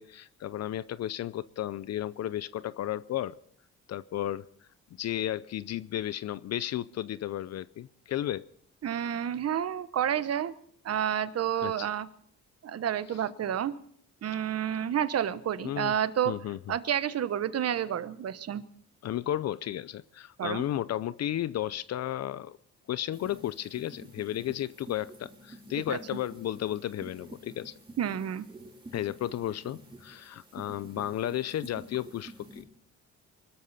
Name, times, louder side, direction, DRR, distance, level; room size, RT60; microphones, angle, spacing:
voice 1, 0.0-3.4 3.9-4.4 4.9-8.5 11.6-11.9 15.6-16.0 16.3-16.6 19.0-22.6 22.9-27.7 28.9-32.6, left 12 dB, 60° left, 18 dB, 0.6 m, -33 dB
voice 2, 8.8-10.5 10.8-12.1 12.6-13.7 14.2-16.3 16.7-18.6 20.4-20.6 25.9-26.0 28.0-28.4, right 9 dB, 55° right, 14 dB, 1.1 m, -30 dB
sound 1, 23.1-32.6, right 1 dB, 15° right, 4.0 m, -49 dB
24.0 x 13.0 x 4.2 m, 0.64 s
cardioid pair, 90°, 30 cm